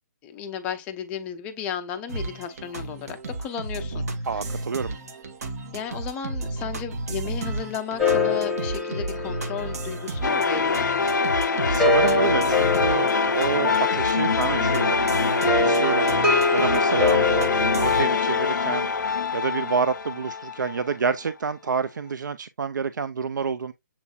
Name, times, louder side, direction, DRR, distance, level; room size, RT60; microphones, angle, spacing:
voice 1, 0.2-4.0 4.3-4.6 5.7-10.9, left 8 dB, 10° left, 0.4 m, -34 dB
sound 1, 2.1-18.0, right 2 dB, 55° right, 0.9 m, -33 dB
voice 2, 4.3-4.9 11.7-16.1 16.5-18.9 19.3-23.7, right 5 dB, 80° right, 0.4 m, -28 dB
sound 2, 8.0-11.0 11.5-14.3 15.4-18.7, left 3 dB, 5° right, 1.1 m, -25 dB
sound 3, 10.2-21.1, left 4 dB, 75° left, 0.5 m, -24 dB
7.1 x 2.6 x 2.2 m
hypercardioid pair, 150°, 10 cm